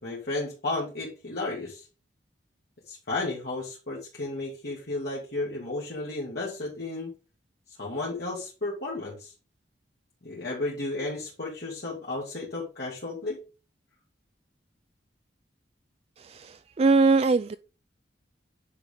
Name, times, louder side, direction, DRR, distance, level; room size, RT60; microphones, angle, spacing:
voice 1, 0.0-1.9 2.9-7.1 7.8-9.3 10.2-13.4, left 2 dB, 60° left, 2.3 m, -33 dB
voice 2, 16.2-17.6, right 3 dB, 35° right, 0.3 m, -22 dB
9.7 x 5.2 x 3.6 m
head